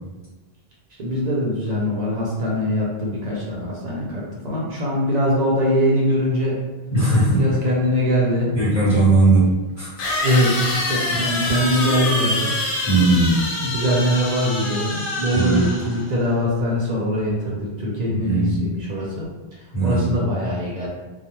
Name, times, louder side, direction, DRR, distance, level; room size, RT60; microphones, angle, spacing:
voice 1, 1.0-6.5 7.3-8.5 10.2-12.5 13.6-20.9, equal, 50° right, -5 dB, 0.6 m, -22 dB
voice 2, 6.9-7.4 8.5-9.4 9.8-10.0 12.9-13.4 15.3-15.7 18.1-18.6 19.7-20.2, right 2 dB, 25° left, -11 dB, 0.9 m, -18 dB
sound 1, 8.4-8.5 10.0-16.1, left 2 dB, 65° left, 0.7 m, -26 dB
2.3 x 2.1 x 2.9 m, 1.2 s
omnidirectional pair, 1.1 m